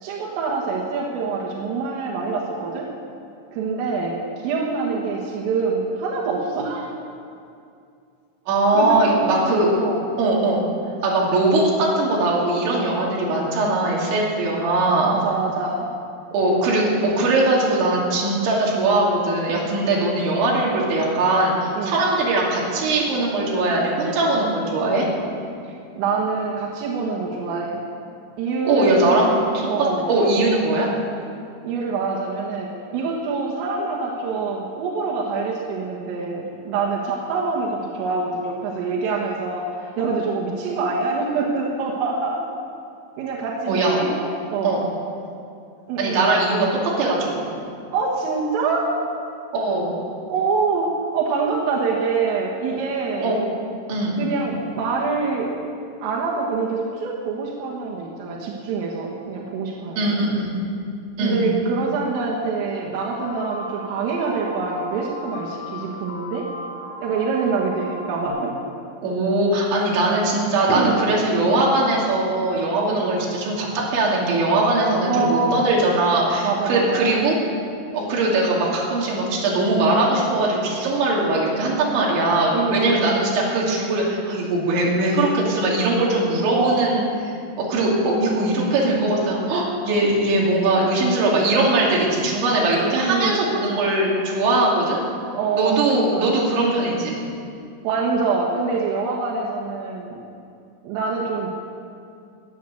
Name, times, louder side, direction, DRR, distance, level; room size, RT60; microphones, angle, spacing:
voice 1, 0.0-2.9 3.5-4.2 4.4-6.9 8.7-10.1 15.0-15.9 21.8-22.0 26.0-27.8 28.4-29.2 29.7-30.0 31.6-39.6 40.0-42.4 43.2-44.8 45.9-46.4 47.9-48.9 50.3-53.4 54.2-55.6 56.0-60.3 61.2-66.5 67.0-68.5 70.7-71.0 72.9-73.2 75.1-75.6 76.4-77.2 82.5-83.3 86.5-87.0 93.1-93.4 95.3-96.3 97.8-100.2 100.8-101.5, right 4 dB, 90° right, -3 dB, 4.1 m, -25 dB
voice 2, 8.5-9.7 10.2-10.7 11.0-15.1 16.3-25.1 28.6-29.3 29.5-30.9 43.7-44.0 44.6-44.8 46.0-46.7 47.0-47.5 49.5-49.9 53.2-53.4 53.9-54.2 60.0-60.5 61.2-61.4 69.0-77.3 77.9-87.0 87.6-95.0 95.6-97.2, right 2 dB, 70° right, -4 dB, 4.9 m, -20 dB
sound 1, 63.2-68.3, equal, 85° left, 1.3 m, -36 dB
20.5 x 8.5 x 6.9 m, 2.4 s
omnidirectional pair, 5.7 m